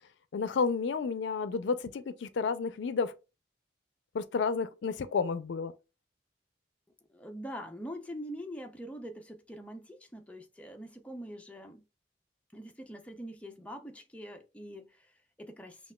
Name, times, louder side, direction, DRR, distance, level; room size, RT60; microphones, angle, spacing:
voice 1, 0.3-3.1 4.1-5.7, left 5 dB, 80° left, 0.4 m, -31 dB
voice 2, 7.1-11.9 12.5-15.9, equal, 5° left, 0.5 m, -44 dB
5.7 x 2.4 x 2.2 m
head